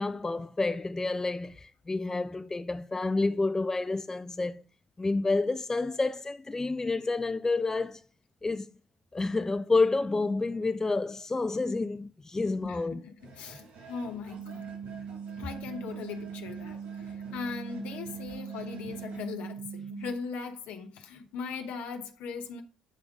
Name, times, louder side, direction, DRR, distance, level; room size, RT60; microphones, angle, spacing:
voice 1, 0.0-4.6 5.0-8.0 8.4-8.7 9.1-13.0, left 3 dB, 20° left, 0.4 m, -29 dB
voice 2, 12.6-14.7 15.4-22.6, left 5 dB, 75° left, 1.0 m, -39 dB
sound 1, 13.2-19.2, right 4 dB, 75° right, 3.2 m, -50 dB
sound 2, 14.3-20.1, right 7 dB, 50° right, 0.6 m, -40 dB
8.4 x 3.6 x 5.0 m
hypercardioid pair, 60°, 2 cm